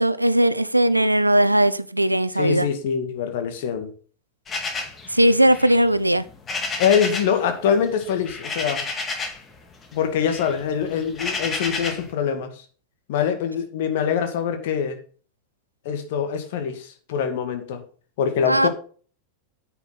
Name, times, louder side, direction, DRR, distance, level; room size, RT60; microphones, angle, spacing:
voice 1, 0.0-2.7 5.1-6.2 18.5-18.7, right 1 dB, 85° right, 0.6 m, -18 dB
voice 2, 2.3-3.9 6.8-8.9 9.9-12.6 13.1-15.0 15.9-17.8 18.2-18.7, left 7 dB, 50° left, 2.1 m, -24 dB
sound 1, 4.5-7.4 7.7-9.5 9.8-12.1, left 3 dB, 20° left, 2.3 m, -31 dB
9.9 x 8.3 x 4.0 m
figure-of-eight pair, 90°, 0 cm